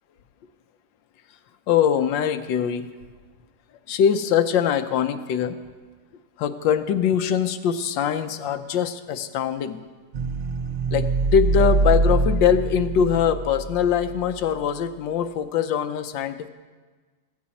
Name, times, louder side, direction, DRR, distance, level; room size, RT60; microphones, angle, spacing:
voice 1, 1.7-2.9 3.9-5.6 6.4-9.8 10.9-16.5, left 8 dB, 90° left, 10 dB, 1.4 m, -22 dB
sound 1, 10.1-14.3, right 3 dB, 85° right, 0.4 m, -24 dB
15.5 x 14.5 x 4.1 m, 1.4 s
omnidirectional pair, 1.9 m